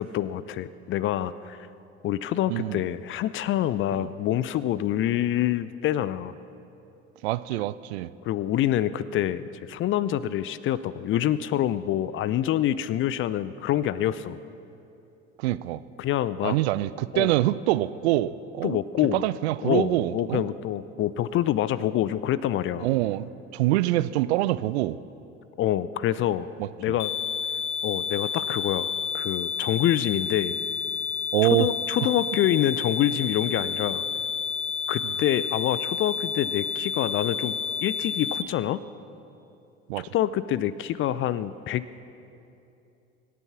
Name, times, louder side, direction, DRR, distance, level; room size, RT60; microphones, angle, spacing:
voice 1, 0.0-1.6 2.0-6.3 8.2-14.4 16.0-16.6 17.1-17.3 18.6-19.3 19.6-22.9 25.6-26.5 26.8-27.1 27.8-30.6 31.6-34.0 34.9-37.5 37.8-38.8 40.0-42.0, left 12 dB, 35° left, 17 dB, 0.5 m, -26 dB
voice 2, 7.2-8.1 15.4-15.8 16.4-18.8 19.1-20.4 22.8-25.0 31.3-31.7 32.0-32.1 39.9-40.1, right 15 dB, 60° right, 16 dB, 0.5 m, -25 dB
sound 1, 27.0-38.4, left 6 dB, 70° left, 0.8 m, -30 dB
24.5 x 8.4 x 6.0 m, 2.8 s
figure-of-eight pair, 60°, 36 cm